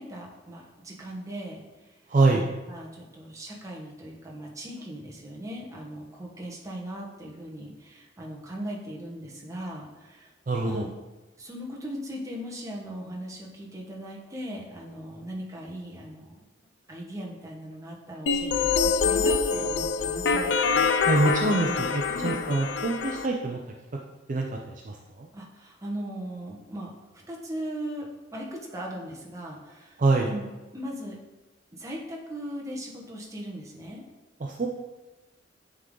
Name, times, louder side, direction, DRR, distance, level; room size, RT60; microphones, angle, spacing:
voice 1, 0.0-1.6 2.3-10.3 10.6-10.9 11.4-16.4 16.9-20.8 22.1-22.4 25.3-28.0 28.3-30.5 30.7-31.2 31.7-34.0, equal, 15° right, -2 dB, 1.1 m, -38 dB
voice 2, 2.1-2.5 10.5-10.9 21.0-23.6 24.3-25.3 30.0-30.3 34.4-34.7, right 3 dB, 45° right, 1 dB, 0.5 m, -25 dB
sound 1, 18.3-23.3, left 5 dB, 65° left, 0.4 m, -25 dB
9.4 x 3.7 x 3.8 m, 1.1 s
head